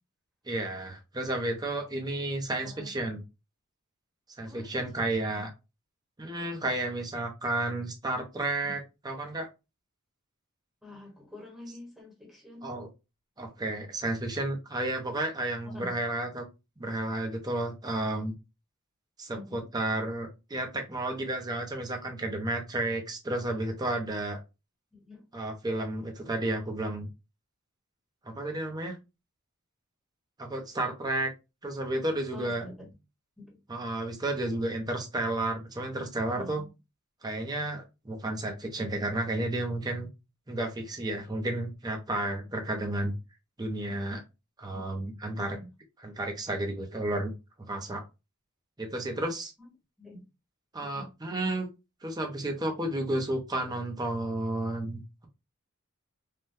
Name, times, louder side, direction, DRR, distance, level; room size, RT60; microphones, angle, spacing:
voice 1, 0.5-3.2 4.4-5.5 6.2-9.5 12.6-12.9 13.4-16.5 16.8-18.3 19.2-24.4 25.3-27.1 28.2-29.0 30.4-31.3 31.6-32.6 33.7-36.6 37.2-40.1 40.5-43.1 43.6-44.2 44.6-45.6 46.0-47.3 47.7-48.0 48.8-49.5 50.7-51.7 52.0-55.3, right 1 dB, 20° right, 0.6 m, -32 dB
voice 2, 4.4-5.2 8.6-8.7 10.8-12.7 15.6-16.0 19.3-19.7 24.9-25.2 32.3-33.0 33.4-33.6 36.3-36.7 44.7-44.9 45.3-45.7 49.6-49.7 50.0-50.2 50.8-51.1, left 2 dB, ahead, 1.0 m, -47 dB
3.3 x 2.2 x 2.6 m
head